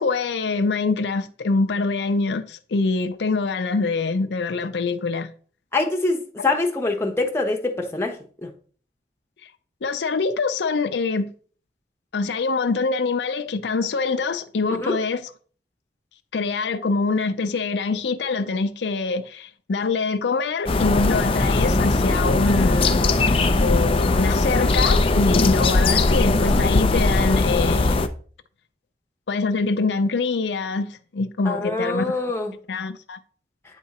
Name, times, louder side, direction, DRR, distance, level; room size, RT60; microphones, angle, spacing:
voice 1, 0.0-5.3 9.4-9.5 9.8-11.3 12.1-15.3 16.3-23.1 23.6-28.0 29.3-32.1 32.7-33.2, left 4 dB, 85° left, 0.5 m, -24 dB
voice 2, 5.7-8.2 8.4-8.5 14.8-15.0 31.4-32.5, left 2 dB, 15° left, 1.0 m, -24 dB
sound 1, 20.7-28.1, left 2 dB, 30° left, 0.4 m, -19 dB
9.0 x 3.7 x 4.2 m
head